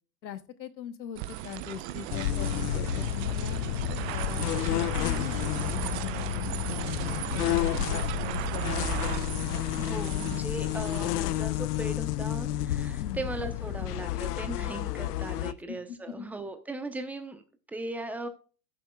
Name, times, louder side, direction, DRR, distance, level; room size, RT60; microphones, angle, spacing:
voice 1, 0.2-3.6 4.1-9.2 13.0-13.3 15.7-16.3, left 9 dB, 90° left, 12 dB, 1.2 m, -41 dB
sound 1, 1.2-11.1, right 13 dB, 40° right, 0.8 m, -36 dB
sound 2, 2.1-15.5, left 14 dB, 65° left, 0.7 m, -30 dB
voice 2, 9.7-17.4 17.7-18.3, right 2 dB, 5° right, 8 dB, 0.9 m, -38 dB
15.0 x 7.2 x 2.3 m, 0.36 s
hypercardioid pair, 120°, 50 cm